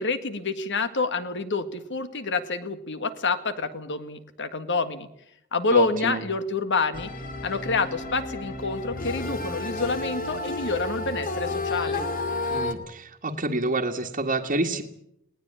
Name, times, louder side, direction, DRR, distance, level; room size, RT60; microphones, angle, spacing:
voice 1, 0.0-5.1 5.5-7.1 7.4-12.1, left 3 dB, 60° left, 11 dB, 1.8 m, -27 dB
voice 2, 5.7-6.2 12.5-14.8, right 2 dB, 40° right, -3 dB, 1.7 m, -28 dB
sound 1, 6.9-12.7, left 2 dB, 40° left, 2.5 m, -31 dB
20.5 x 18.5 x 8.7 m, 0.77 s
head